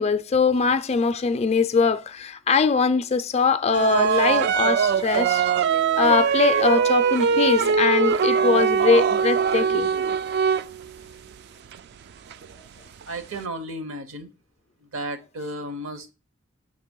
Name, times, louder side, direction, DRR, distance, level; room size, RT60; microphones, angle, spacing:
voice 1, 0.0-5.5 6.0-9.9, left 5 dB, 30° left, 0.4 m, -22 dB
sound 1, 3.7-11.1 11.7-11.8 12.3-12.5 13.0-13.1 13.3-13.4, right 6 dB, 55° right, 0.3 m, -21 dB
voice 2, 13.0-14.3 14.8-16.1, right 1 dB, 70° right, 0.9 m, -33 dB
6.5 x 2.9 x 5.3 m
head